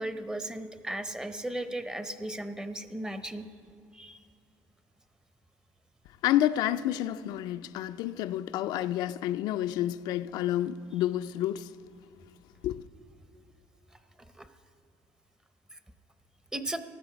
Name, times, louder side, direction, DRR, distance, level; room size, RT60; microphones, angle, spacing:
voice 1, 0.0-3.5 3.9-4.2 14.4-14.5 15.7-15.8 16.5-16.8, right 1 dB, 10° right, 0.7 m, -36 dB
voice 2, 6.2-11.7 12.6-12.8, left 13 dB, 75° left, 0.4 m, -29 dB
15.0 x 12.0 x 5.1 m
cardioid pair, 110°, 7 cm